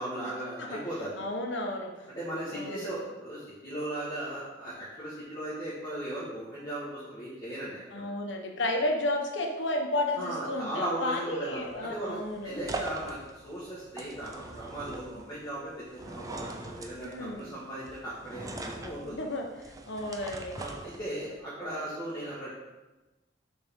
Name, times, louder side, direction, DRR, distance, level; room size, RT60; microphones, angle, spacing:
voice 1, 0.0-1.1 2.1-8.1 10.2-19.2 20.6-22.5, right 1 dB, 20° left, -10 dB, 1.3 m, -37 dB
voice 2, 1.2-1.9 2.5-2.9 7.9-12.6 17.0-17.5 19.0-19.5 19.9-20.6, left 1 dB, 80° left, 2 dB, 0.8 m, -32 dB
sound 1, 11.5-21.4, right 2 dB, 20° right, 0.4 m, -42 dB
6.2 x 4.4 x 3.5 m, 1.1 s
head